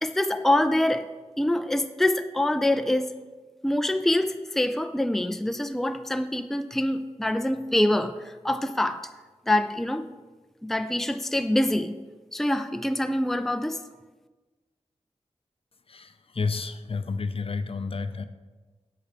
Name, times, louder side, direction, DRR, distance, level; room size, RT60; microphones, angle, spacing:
voice 1, 0.0-1.1 1.4-3.1 3.6-9.0 9.5-10.1 10.6-12.0 12.3-13.8, left 1 dB, 5° left, 9 dB, 0.4 m, -25 dB
voice 2, 15.9-18.2, left 4 dB, 50° left, 10 dB, 0.5 m, -31 dB
8.3 x 6.7 x 4.3 m, 1.3 s
cardioid pair, 45°, 12 cm